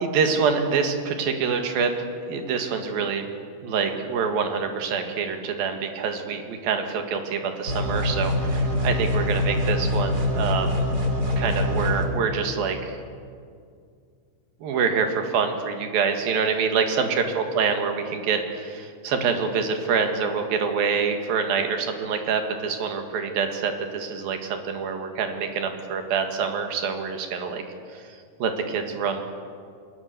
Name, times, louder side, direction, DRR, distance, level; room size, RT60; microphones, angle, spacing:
voice 1, 0.0-1.9 2.3-3.2 3.6-10.8 11.4-13.0 14.6-27.6 27.9-28.0 28.4-29.2, right 5 dB, 80° right, 5 dB, 3.7 m, -26 dB
sound 1, 7.7-12.1, left 1 dB, 30° right, 2.8 m, -24 dB
27.5 x 20.0 x 6.8 m, 2.2 s
omnidirectional pair, 4.1 m